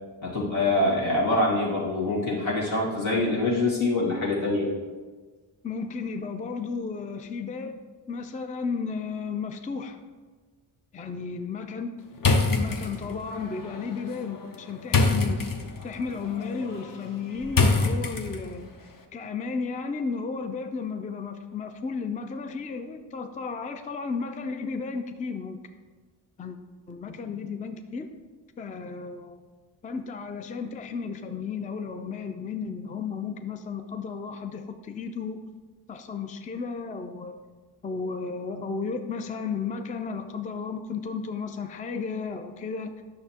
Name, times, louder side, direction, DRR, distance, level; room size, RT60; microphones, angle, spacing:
voice 1, 0.2-4.7, left 2 dB, 75° left, -4 dB, 2.1 m, -25 dB
voice 2, 5.6-7.8 8.1-10.0 10.9-12.0 12.4-15.5 15.8-18.7 19.1-25.6 26.4-26.6 26.9-28.1 28.6-29.4 29.8-35.4 35.9-37.4 37.8-43.0, left 5 dB, 20° left, 7 dB, 0.3 m, -33 dB
sound 1, 12.2-18.7, left 3 dB, 45° left, 0.8 m, -27 dB
9.0 x 6.5 x 2.8 m, 1.4 s
wide cardioid pair, 90°, 48 cm